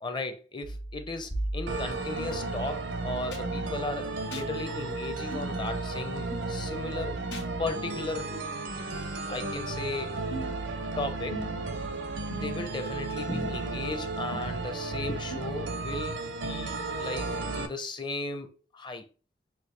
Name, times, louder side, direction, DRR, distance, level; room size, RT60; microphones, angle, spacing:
voice 1, 0.0-7.2 7.6-8.3 9.3-10.4 11.0-11.5 12.3-19.1, left 2 dB, 25° left, 0.6 m, -36 dB
sound 1, 0.6-2.3 3.3-3.4 4.3-4.5 5.3-5.5 6.3-6.5 7.3-7.5 8.3-8.5 9.3-9.4 10.3-10.6 11.3-11.7 12.3-12.7 13.3-13.4 14.3-14.4 15.3-15.4, right 1 dB, 65° left, 1.4 m, -38 dB
sound 2, 1.7-17.7, right 3 dB, 80° right, 0.7 m, -34 dB
6.0 x 2.6 x 3.3 m
head